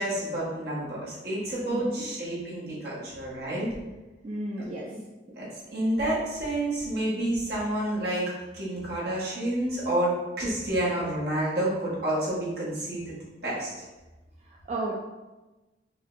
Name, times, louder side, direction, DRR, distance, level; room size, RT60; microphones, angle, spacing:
voice 1, 0.0-3.7 4.6-4.7 5.3-8.2 8.5-13.1 13.4-13.7, right 1 dB, 60° right, -7 dB, 1.3 m, -29 dB
voice 2, 1.7-2.1 4.2-4.9 14.4-14.9, right 2 dB, 35° right, -4 dB, 0.4 m, -33 dB
5.0 x 2.6 x 2.6 m, 1.1 s
head